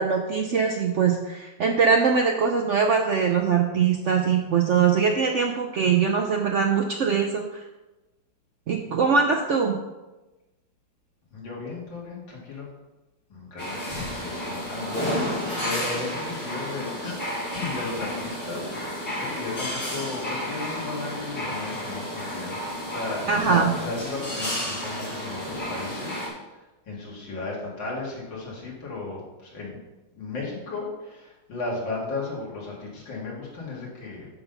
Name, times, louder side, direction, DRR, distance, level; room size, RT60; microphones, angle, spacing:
voice 1, 0.0-7.4 8.7-9.8 23.3-23.7, right 6 dB, 70° right, 3 dB, 0.7 m, -22 dB
voice 2, 11.3-12.7 13.3-17.1 17.5-22.6 22.9-26.2 26.5-29.8 30.1-34.3, left 3 dB, 80° left, -4 dB, 2.9 m, -35 dB
sound 1, 13.6-26.3, left 1 dB, 55° left, 3.6 m, -31 dB
11.0 x 4.0 x 5.5 m, 1.1 s
omnidirectional pair, 2.0 m